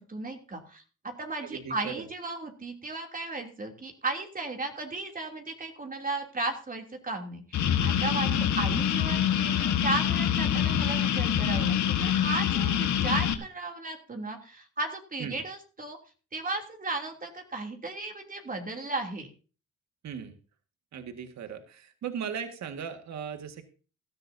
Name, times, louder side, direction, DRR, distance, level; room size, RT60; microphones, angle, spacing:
voice 1, 0.0-16.0 16.3-19.3, right 3 dB, 30° right, 3 dB, 3.0 m, -35 dB
voice 2, 1.4-2.1 8.2-8.4 15.2-15.4 20.0-20.4 20.9-23.6, right 7 dB, 65° right, 7 dB, 1.9 m, -38 dB
sound 1, 7.5-13.3, left 9 dB, 70° left, 1.5 m, -25 dB
17.5 x 13.0 x 2.8 m, 0.36 s
cardioid pair, 90°, 30 cm